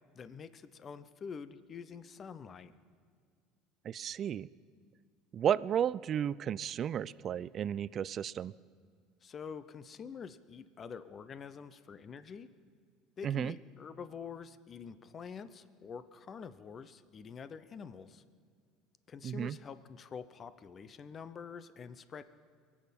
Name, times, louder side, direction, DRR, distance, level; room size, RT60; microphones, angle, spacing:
voice 1, 0.1-2.7 9.2-12.5 13.2-18.2 19.1-22.2, left 6 dB, 40° left, 13 dB, 0.7 m, -46 dB
voice 2, 3.8-4.5 5.3-8.5 13.2-13.5 19.2-19.6, right 9 dB, 45° right, 19 dB, 0.4 m, -33 dB
23.5 x 8.7 x 5.4 m, 2.1 s
hypercardioid pair, 85°, 0 cm